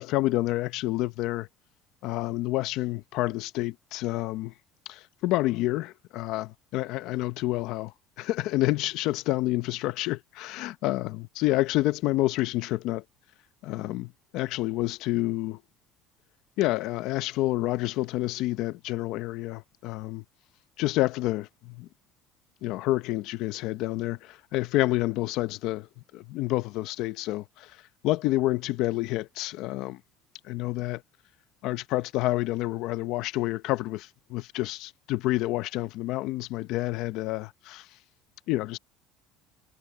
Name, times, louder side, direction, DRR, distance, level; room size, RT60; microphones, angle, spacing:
voice 1, 0.0-1.5 2.0-4.5 4.9-13.0 13.6-15.6 16.6-20.2 20.8-21.9 22.6-25.9 26.1-27.8 28.0-30.0 30.4-31.0 31.6-37.9 38.5-38.8, left 17 dB, 65° left, 0.9 m, -29 dB
cardioid pair, 120°, 0 cm